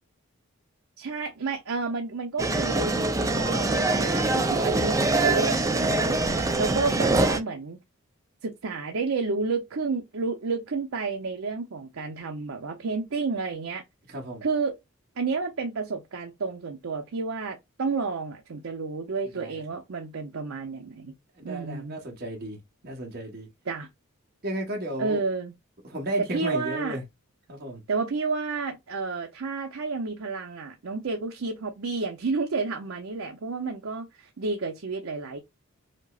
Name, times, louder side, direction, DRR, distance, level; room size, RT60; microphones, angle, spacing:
voice 1, 1.0-3.0 3.3-6.2 6.6-7.8 8.4-13.8 14.4-14.8 15.2-21.1 21.4-22.0 23.7-23.9 25.0-25.5 26.2-27.0 27.9-35.4, right 4 dB, 75° right, 0.6 m, -30 dB
sound 1, 2.4-7.4, right 2 dB, 15° right, 0.4 m, -24 dB
voice 2, 14.1-14.4 19.4-19.6 21.4-22.6 22.8-23.5 24.4-25.2 25.9-27.0 27.5-27.8, right 1 dB, 45° right, 1.1 m, -33 dB
5.1 x 2.0 x 2.3 m
head